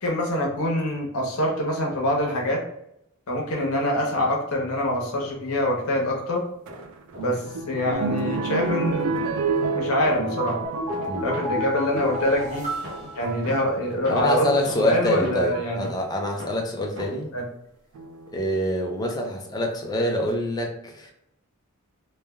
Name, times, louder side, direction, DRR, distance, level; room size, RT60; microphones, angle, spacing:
voice 1, 0.0-2.6 3.3-6.4 7.2-9.2 9.7-10.6 11.2-12.6 13.1-15.9 17.3-17.4, left 1 dB, 80° left, -1 dB, 0.8 m, -25 dB
sound 1, 6.5-7.6 7.9-12.4 12.8-17.4, equal, 65° right, 0.7 m, -42 dB
sound 2, 6.7-12.3 13.0-13.5 14.7-14.8 15.5-15.8 17.9-18.6 19.2-19.3 19.6-19.7, right 3 dB, 90° right, 0.3 m, -29 dB
sound 3, 10.6-14.1 14.4-14.5, equal, 30° right, 0.8 m, -33 dB
voice 2, 14.1-17.3 18.3-21.1, left 1 dB, 20° left, 1 dB, 0.4 m, -26 dB
3.2 x 2.2 x 2.3 m, 0.79 s
head